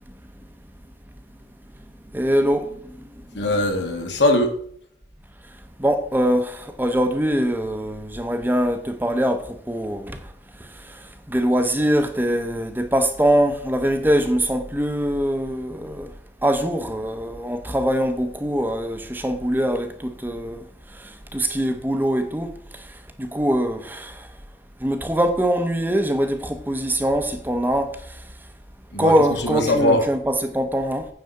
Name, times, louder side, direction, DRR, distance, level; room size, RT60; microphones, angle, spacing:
voice 1, 2.1-2.7 5.8-10.2 10.9-11.0 11.3-16.1 16.4-20.6 20.9-22.9 23.2-24.3 24.8-27.9 29.0-31.1, equal, 10° right, 0.7 m, -23 dB
voice 2, 3.3-4.5 28.9-30.1, left 1 dB, 75° left, 1.7 m, -21 dB
9.3 x 4.1 x 6.5 m
head